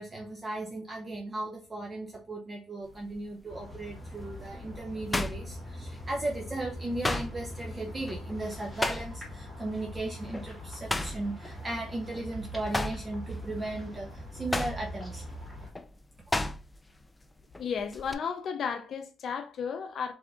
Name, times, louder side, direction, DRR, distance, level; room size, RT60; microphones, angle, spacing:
voice 1, 0.0-15.2, right 2 dB, 25° right, 0.7 m, -36 dB
sound 1, 2.9-3.2 3.7-6.2 6.5-9.4 9.7-10.0 10.3-12.3 12.6-17.0 17.2-18.1, left 2 dB, 15° left, 0.4 m, -34 dB
sound 2, 3.5-15.7, equal, ahead, 2.2 m, -42 dB
voice 2, 17.6-20.1, left 6 dB, 60° left, 0.6 m, -33 dB
3.7 x 3.4 x 3.7 m
cardioid pair, 90°, 0 cm